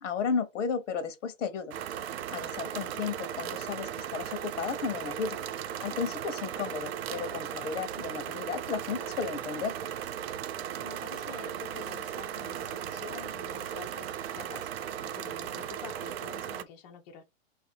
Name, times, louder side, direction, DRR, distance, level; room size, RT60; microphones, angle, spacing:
voice 1, 0.0-1.8 2.3-5.4 5.8-9.7, left 6 dB, 70° left, 1.0 m, -34 dB
sound 1, 1.7-16.6, right 10 dB, 50° right, 0.5 m, -37 dB
voice 2, 10.8-17.2, left 6 dB, 30° left, 0.5 m, -48 dB
3.2 x 2.7 x 4.3 m
hypercardioid pair, 140°, 39 cm